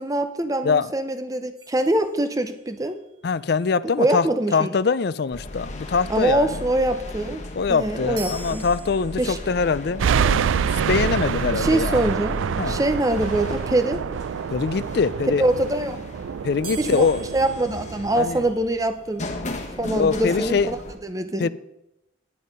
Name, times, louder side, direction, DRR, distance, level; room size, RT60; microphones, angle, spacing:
voice 1, 0.0-3.0 4.0-4.7 6.1-7.4 7.7-8.6 9.2-9.4 11.5-12.4 12.7-14.0 15.4-16.0 16.8-17.1 17.3-19.2 19.8-21.5, right 1 dB, 15° right, 0.6 m, -24 dB
sound 1, 1.6-2.9 8.2-9.6 16.6-18.8, right 4 dB, 45° right, 2.6 m, -42 dB
voice 2, 3.2-4.3 4.5-6.5 7.6-10.4 10.9-12.1 12.6-12.8 14.5-15.4 16.4-17.2 18.1-18.4 19.9-20.7 21.4-21.5, left 5 dB, 55° left, 0.4 m, -23 dB
sound 2, 5.3-20.9, left 1 dB, 35° left, 1.2 m, -37 dB
sound 3, 10.0-18.5, right 7 dB, 80° right, 0.3 m, -26 dB
9.7 x 9.4 x 5.4 m
head